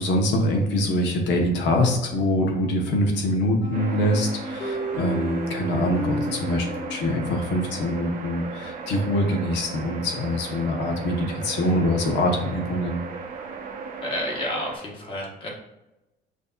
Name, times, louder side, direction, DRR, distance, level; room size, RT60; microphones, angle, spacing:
voice 1, 0.0-13.0, left 1 dB, 85° left, 2 dB, 1.0 m, -24 dB
sound 1, 3.6-8.3, left 1 dB, 60° left, 1.5 m, -33 dB
sound 2, 3.7-14.8, right 5 dB, 50° right, 0.6 m, -36 dB
voice 2, 14.0-15.5, left 1 dB, 30° left, -2 dB, 1.1 m, -30 dB
6.1 x 2.7 x 2.3 m, 0.96 s
cardioid pair, 165°, 18 cm